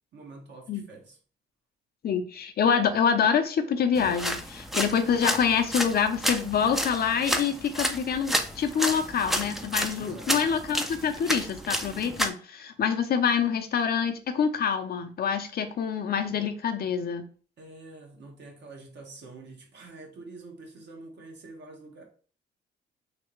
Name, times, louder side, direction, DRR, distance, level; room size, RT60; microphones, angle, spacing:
voice 1, 0.1-1.2 10.0-10.4 17.6-22.0, right 3 dB, 60° right, 1.2 m, -46 dB
voice 2, 2.0-17.3, left 7 dB, 50° left, 0.5 m, -26 dB
sound 1, 3.9-12.3, equal, ahead, 0.4 m, -31 dB
3.3 x 2.7 x 3.1 m
cardioid pair, 90°, 20 cm